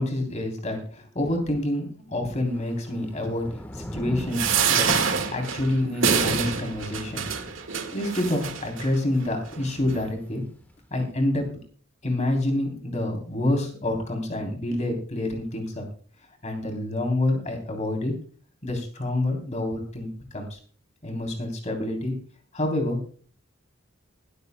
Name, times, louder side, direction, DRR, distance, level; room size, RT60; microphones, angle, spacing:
voice 1, 0.0-4.9 5.3-7.2 7.9-10.4 10.9-11.5 12.0-15.8 16.4-18.1 18.6-20.6 21.0-22.1 22.5-23.0, left 1 dB, 35° left, 2 dB, 3.5 m, -27 dB
Thunder / Rain, 2.5-10.8, equal, 10° left, 1.4 m, -42 dB
sound 1, 4.3-8.9 9.5-9.6 9.9-10.0, right 6 dB, 75° right, 1.8 m, -26 dB
20.5 x 13.5 x 2.3 m, 0.43 s
head